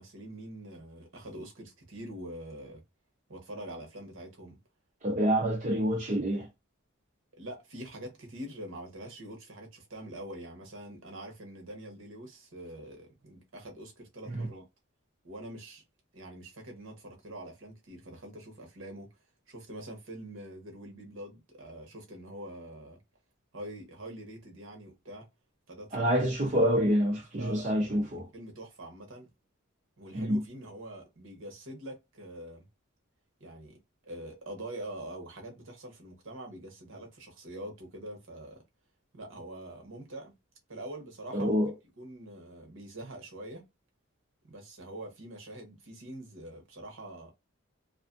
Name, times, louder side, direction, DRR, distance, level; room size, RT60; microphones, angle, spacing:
voice 1, 0.0-2.8 3.3-4.6 7.4-14.6 15.2-15.8 16.1-19.1 19.5-23.0 23.5-25.3 25.7-26.1 27.3-29.3 30.0-32.7 33.4-33.8 34.0-38.6 39.1-40.3 40.7-41.6 42.0-43.6 44.4-47.3, right 1 dB, 65° right, 0.9 m, -44 dB
voice 2, 5.0-6.5 14.3-14.5 25.9-28.3 30.1-30.4 41.3-41.7, equal, 35° right, 0.6 m, -27 dB
2.5 x 2.4 x 2.4 m
head